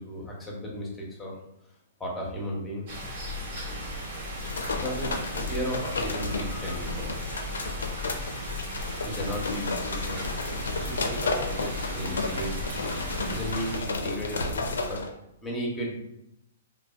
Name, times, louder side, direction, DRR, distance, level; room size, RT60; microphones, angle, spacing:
voice 1, 0.0-1.4 2.0-2.9 4.8-7.6 9.0-12.5 13.3-15.0 15.4-15.9, equal, 10° left, -3 dB, 0.7 m, -35 dB
sound 1, 2.9-13.8, equal, 60° right, 0.7 m, -36 dB
sound 2, 4.3-15.1, left 3 dB, 85° left, 0.4 m, -32 dB
2.5 x 2.1 x 2.4 m, 0.80 s
hypercardioid pair, 140°, 0 cm